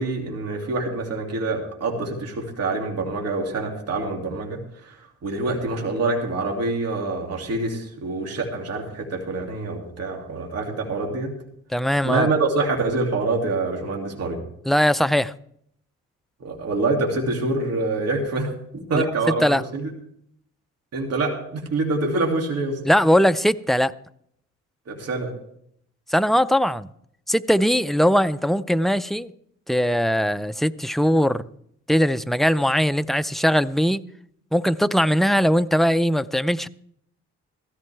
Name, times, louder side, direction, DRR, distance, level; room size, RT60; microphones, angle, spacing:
voice 1, 0.0-11.3 12.0-14.4 16.4-19.9 20.9-22.8 24.9-25.3, right 3 dB, 55° right, 2.6 m, -26 dB
voice 2, 11.7-12.3 14.7-15.3 18.9-19.0 19.4-19.6 22.8-23.9 26.1-26.9 27.3-29.3 29.7-31.5 31.9-34.0 34.5-36.7, equal, ahead, 0.4 m, -20 dB
16.0 x 14.0 x 3.4 m
cardioid pair, 90°, 30 cm